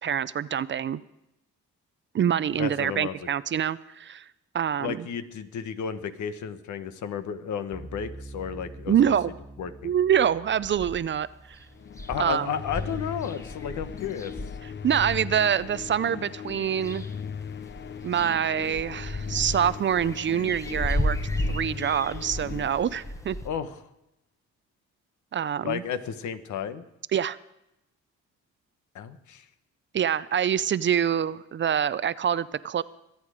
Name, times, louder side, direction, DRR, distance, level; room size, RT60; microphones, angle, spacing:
voice 1, 0.0-1.0 2.1-4.2 4.5-5.1 8.9-9.3 9.8-11.6 12.2-12.5 14.8-17.0 18.0-21.2 21.5-23.4 25.3-25.8 27.1-27.4 29.9-32.8, right 9 dB, 40° right, 17 dB, 0.5 m, -25 dB
voice 2, 2.6-3.2 4.8-9.1 9.6-9.9 12.1-14.3 23.4-23.8 25.6-26.8 28.9-29.5, left 8 dB, 70° left, 11 dB, 1.1 m, -33 dB
sound 1, 7.7-14.8, right 2 dB, 5° right, 1.8 m, -47 dB
sound 2, 10.6-11.2 11.6-11.7 11.9-16.0 16.5-17.3 17.6-23.5, left 1 dB, 10° left, 1.0 m, -34 dB
sound 3, 11.7-23.6, left 7 dB, 40° left, 0.7 m, -38 dB
24.5 x 9.0 x 4.9 m, 0.88 s
cardioid pair, 90°, 30 cm